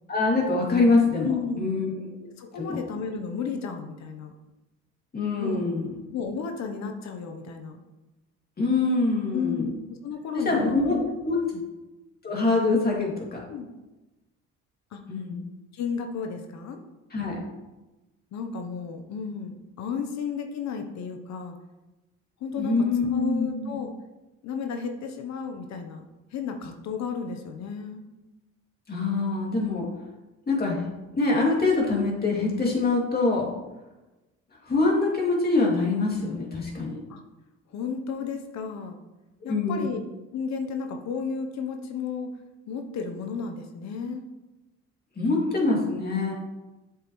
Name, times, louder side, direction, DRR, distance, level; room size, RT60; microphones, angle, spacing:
voice 1, 0.1-2.3 2.6-2.8 5.1-5.9 8.6-9.7 10.3-11.0 11.2-11.4 12.2-13.4 15.1-15.4 17.1-17.4 22.5-23.8 28.9-29.8 30.5-30.8 31.2-33.5 34.6-37.0 39.4-39.9 45.2-46.3, left 3 dB, 30° left, -2 dB, 2.6 m, -24 dB
voice 2, 1.2-1.9 2.4-4.3 5.4-5.6 6.1-7.8 9.3-11.0 11.5-11.6 13.5-13.7 14.9-15.0 15.7-16.8 18.3-21.6 22.4-22.8 23.1-23.9 24.4-26.0 26.3-28.0 37.1-37.2 37.7-39.0 39.4-40.0 40.3-42.3 42.7-44.2, left 5 dB, 65° left, 5 dB, 1.0 m, -33 dB
8.4 x 7.2 x 3.2 m, 1.1 s
cardioid pair, 100°, 29 cm